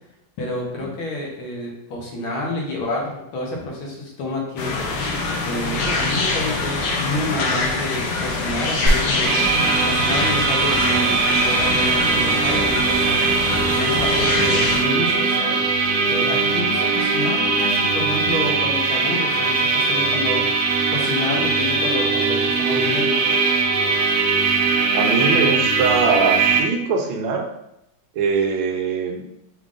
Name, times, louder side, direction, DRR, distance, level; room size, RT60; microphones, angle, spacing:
voice 1, 0.4-9.4 9.8-13.1 13.8-15.6 16.1-20.4 20.9-23.2, left 2 dB, 85° left, -1 dB, 1.8 m, -29 dB
sound 1, 4.6-14.8, left 3 dB, 70° left, 1.2 m, -24 dB
sound 2, 8.9-10.8 11.1-11.2, right 1 dB, 45° right, 1.1 m, -25 dB
sound 3, 9.2-26.6, right 4 dB, 70° right, 1.0 m, -20 dB
voice 2, 24.9-27.5 28.1-29.2, right 5 dB, 85° right, 3 dB, 1.5 m, -22 dB
5.1 x 2.4 x 3.6 m, 0.83 s
omnidirectional pair, 2.2 m